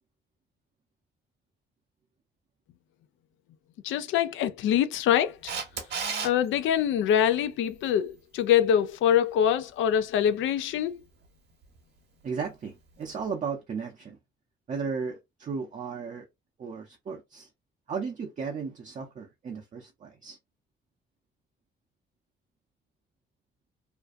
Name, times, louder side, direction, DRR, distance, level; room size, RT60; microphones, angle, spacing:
voice 1, 3.8-5.5 6.2-11.0, left 9 dB, 80° left, 0.4 m, -24 dB
Camera, 5.5-6.3 13.0-13.1, right 5 dB, 55° right, 0.9 m, -31 dB
voice 2, 12.2-14.2 14.7-16.3 16.6-17.5 17.9-20.4, right 5 dB, 40° right, 0.5 m, -35 dB
2.5 x 2.2 x 2.4 m
cardioid pair, 90°, 20 cm